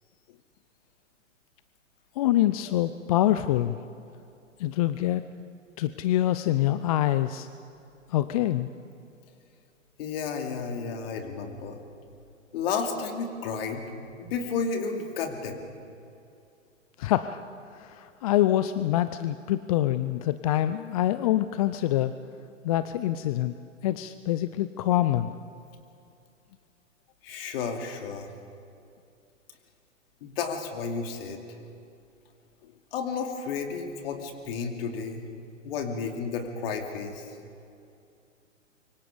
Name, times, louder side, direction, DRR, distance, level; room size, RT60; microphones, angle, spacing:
voice 1, 2.2-3.8 4.6-5.2 5.8-7.5 8.1-8.7 17.0-17.4 17.7-22.1 22.6-23.5 23.8-25.3, left 13 dB, 30° left, 12 dB, 0.4 m, -25 dB
voice 2, 10.0-11.8 12.5-13.8 14.2-15.6 27.2-28.3 30.2-31.4 32.9-35.3 35.6-37.3, left 5 dB, 45° left, 4 dB, 2.9 m, -32 dB
25.0 x 24.0 x 5.1 m, 2.6 s
figure-of-eight pair, 115°, 39 cm